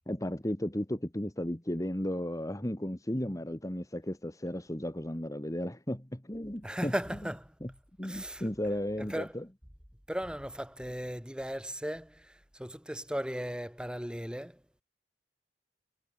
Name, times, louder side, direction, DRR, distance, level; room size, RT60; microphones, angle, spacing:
voice 1, 0.0-6.9 7.6-7.7 8.0-9.4, left 1 dB, 20° left, 1.8 m, -34 dB
voice 2, 6.6-7.5 8.0-8.5 9.0-9.4 10.1-14.6, equal, 5° right, 4.4 m, -37 dB
head